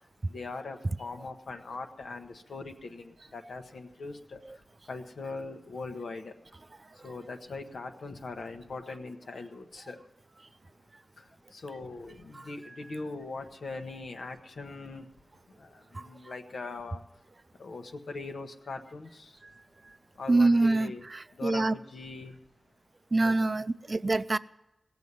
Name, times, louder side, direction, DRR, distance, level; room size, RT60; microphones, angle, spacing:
voice 1, 0.3-4.4 4.9-6.3 7.0-10.0 11.6-15.0 16.0-17.0 17.6-19.2 20.2-21.0 21.4-22.3 23.2-23.3, left 3 dB, 80° left, 1.1 m, -40 dB
voice 2, 20.3-21.7 23.1-24.4, right 2 dB, 35° right, 0.4 m, -25 dB
18.0 x 7.1 x 9.6 m
wide cardioid pair, 100°, 0 cm